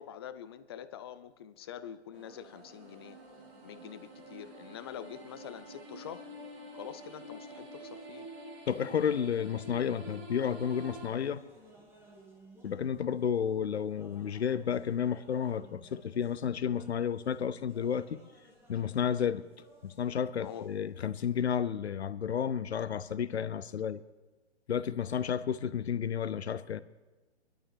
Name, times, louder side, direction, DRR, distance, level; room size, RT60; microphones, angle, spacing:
voice 1, 0.0-3.2 3.6-6.3 6.7-8.3 20.3-20.7, left 9 dB, 25° left, 13 dB, 0.4 m, -45 dB
sound 1, 2.1-11.1, right 1 dB, 30° right, 2.5 m, -48 dB
voice 2, 8.7-11.4 12.6-18.2 18.7-19.4 19.8-24.0 24.7-26.8, left 8 dB, 70° left, 16 dB, 0.7 m, -31 dB
sound 2, 11.0-21.5, right 2 dB, 5° right, 2.3 m, -58 dB
24.0 x 11.5 x 3.4 m, 1.2 s
figure-of-eight pair, 125°, 33 cm